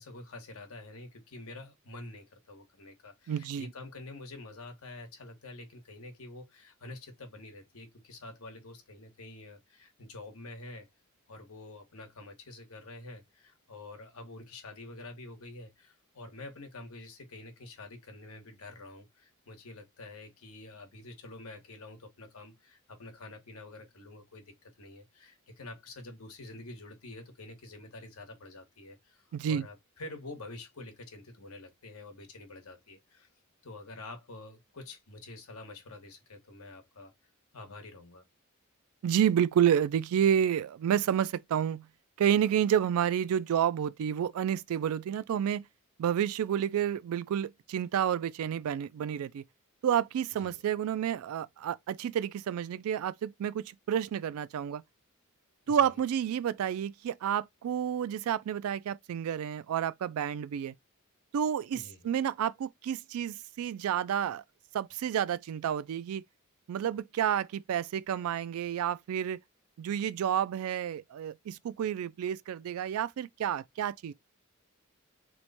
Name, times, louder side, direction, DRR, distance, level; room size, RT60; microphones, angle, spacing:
voice 1, 0.0-10.9 11.3-33.3 33.6-37.1 37.5-38.2 50.4-50.6 55.7-55.9 61.7-62.1, left 2 dB, 75° left, 1.1 m, -47 dB
voice 2, 3.3-3.7 29.3-29.7 39.0-41.9 42.2-45.7 46.0-49.4 49.8-54.8 55.7-60.7 61.3-64.4 64.7-66.2 66.7-69.4 69.8-74.1, right 9 dB, 70° right, 0.3 m, -30 dB
3.0 x 2.1 x 4.0 m
head